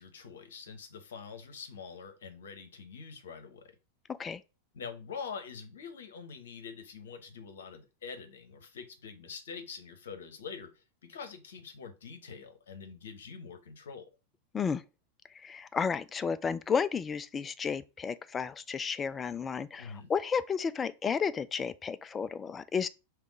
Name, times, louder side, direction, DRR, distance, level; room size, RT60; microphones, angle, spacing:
voice 1, 0.0-3.7 4.7-14.1 19.8-20.1, left 6 dB, 65° left, 0.9 m, -45 dB
voice 2, 15.4-22.9, left 6 dB, 20° left, 0.3 m, -32 dB
3.5 x 3.2 x 4.7 m
figure-of-eight pair, 90°, 0 cm